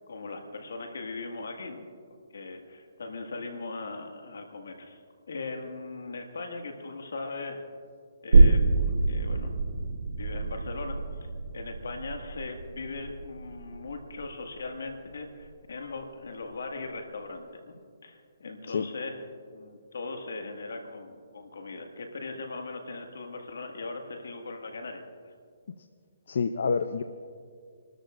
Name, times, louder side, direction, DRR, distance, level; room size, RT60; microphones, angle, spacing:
voice 1, 0.1-1.8 2.3-5.0 5.3-7.6 8.2-9.9 10.2-11.3 11.5-19.2 19.5-25.0, left 3 dB, 85° left, 4 dB, 1.9 m, -39 dB
sound 1, 8.3-15.6 16.0-16.1, right 3 dB, 80° right, 0.9 m, -25 dB
voice 2, 26.3-27.0, left 5 dB, 65° left, 10 dB, 0.5 m, -27 dB
29.0 x 13.0 x 2.5 m, 2.1 s
hypercardioid pair, 155°, 0 cm